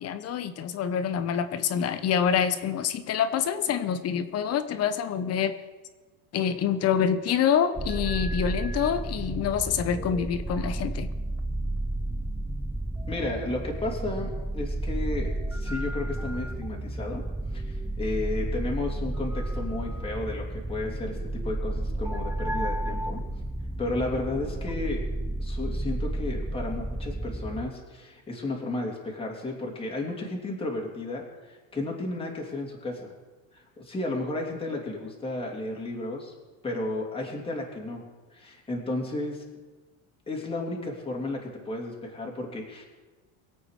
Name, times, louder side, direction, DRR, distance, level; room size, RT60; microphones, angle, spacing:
voice 1, 0.0-5.5 6.3-11.1, left 8 dB, 35° left, 12 dB, 1.1 m, -26 dB
sound 1, 7.8-27.7, right 1 dB, 5° right, 0.4 m, -32 dB
voice 2, 13.1-17.2 17.5-23.2 23.8-25.0 25.4-33.1 33.5-36.3 36.6-38.0 38.3-39.4 40.3-42.8, left 2 dB, 15° left, -1 dB, 3.2 m, -33 dB
24.5 x 8.5 x 4.9 m, 1.3 s
supercardioid pair, 135°, 42 cm